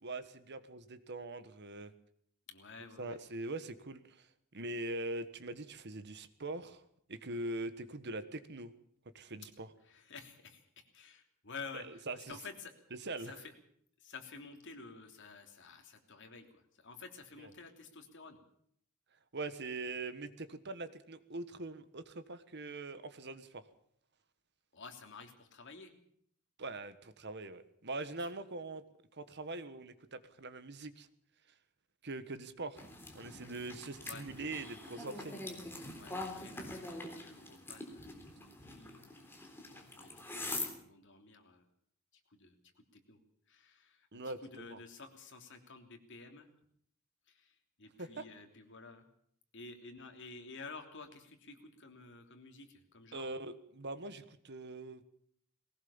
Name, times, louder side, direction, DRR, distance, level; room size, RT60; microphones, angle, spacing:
voice 1, 0.0-1.9 3.0-4.3 4.5-6.8 7.1-8.7 9.1-9.7 11.7-12.4 12.9-13.3 17.4-17.5 19.3-23.6 26.6-28.8 29.2-31.1 32.0-32.8 33.1-35.3 44.1-44.8 48.0-48.3 53.1-55.0, right 2 dB, 55° right, 12 dB, 1.4 m, -42 dB
voice 2, 2.5-3.2 9.8-12.7 13.2-13.5 14.0-18.4 24.7-25.9 34.0-34.3 35.9-41.6 42.3-43.2 43.5-46.5 47.3-49.0 49.5-53.3, left 4 dB, 60° left, 4 dB, 3.2 m, -51 dB
sound 1, 32.8-40.7, left 2 dB, 10° left, 3.6 m, -44 dB
20.0 x 18.5 x 7.2 m, 0.67 s
head